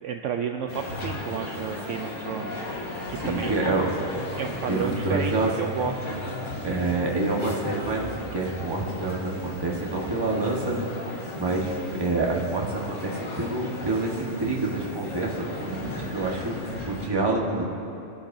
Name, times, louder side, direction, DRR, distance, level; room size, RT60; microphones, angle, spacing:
voice 1, 0.0-2.7 3.1-3.5 4.3-5.3 5.6-6.2, right 7 dB, 70° right, 3 dB, 0.9 m, -31 dB
sound 1, 0.7-17.1, left 2 dB, 60° left, 1.9 m, -35 dB
voice 2, 3.1-4.0 4.7-5.5 6.6-17.6, right 2 dB, 20° right, -2 dB, 1.3 m, -27 dB
21.0 x 11.5 x 2.7 m, 2.7 s
omnidirectional pair, 1.5 m